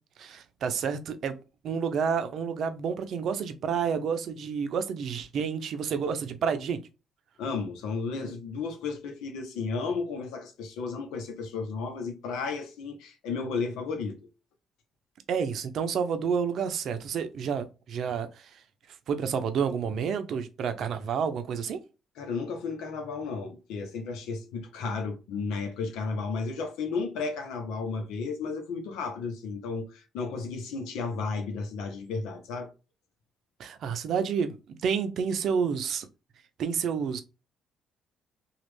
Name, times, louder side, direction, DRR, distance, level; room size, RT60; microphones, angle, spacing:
voice 1, 0.2-1.4 1.6-6.8 15.3-18.5 19.1-21.8 33.6-36.1 36.6-37.2, right 6 dB, 65° right, 0.6 m, -29 dB
voice 2, 7.4-14.2 22.2-32.7, left 4 dB, 85° left, 0.8 m, -33 dB
3.0 x 2.4 x 3.2 m
supercardioid pair, 65°, 0 cm